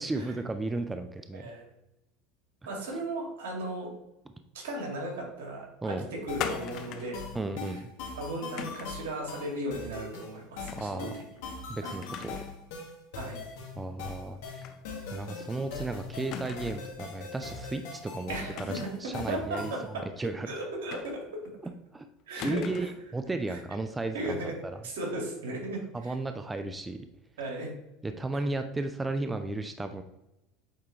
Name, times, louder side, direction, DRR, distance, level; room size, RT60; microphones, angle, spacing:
voice 1, 0.0-1.5 5.8-6.1 7.3-7.9 10.7-11.1 11.7-12.4 13.7-14.7 15.1-18.3 18.6-19.7 20.2-20.5 21.9-22.1 22.4-24.8 25.9-27.1 28.0-30.0, right 2 dB, 15° right, 7 dB, 0.5 m, -34 dB
voice 2, 1.3-1.6 2.7-3.9 4.6-7.2 7.7-7.8 8.2-11.1 11.8-12.0 13.1-13.4 18.3-18.8 19.3-19.8 20.4-21.2 22.3-22.6 23.5-23.6 24.1-24.5 24.8-26.1 27.4-27.7, right 1 dB, 85° right, -1 dB, 2.2 m, -36 dB
sound 1, 6.3-19.9, left 4 dB, 75° left, 1.9 m, -41 dB
sound 2, 6.4-7.2 8.6-9.0 10.7-11.0 11.4-11.5 12.0-12.6 12.9-13.0 14.6-14.8 15.1-15.2 16.3-16.9 18.5-19.1 20.9-21.5 22.4-23.1, left 8 dB, 55° left, 0.6 m, -39 dB
8.2 x 3.6 x 3.2 m, 0.88 s
supercardioid pair, 100°, 0 cm